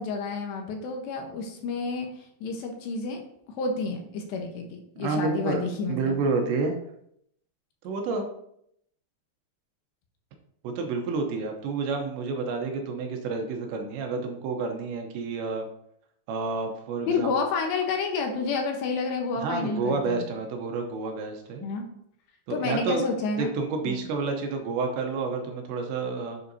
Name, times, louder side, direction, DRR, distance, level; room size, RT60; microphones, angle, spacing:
voice 1, 0.0-3.2 3.6-6.2 17.1-20.2 21.6-21.9 22.5-23.5 23.8-24.1, left 4 dB, 75° left, 3 dB, 3.0 m, -30 dB
voice 2, 5.0-6.8 7.8-8.2 10.6-15.7 16.3-17.3 19.4-21.7 22.5-23.0 23.4-26.4, right 4 dB, 75° right, 3 dB, 3.0 m, -29 dB
11.0 x 7.5 x 2.7 m, 0.72 s
omnidirectional pair, 5.5 m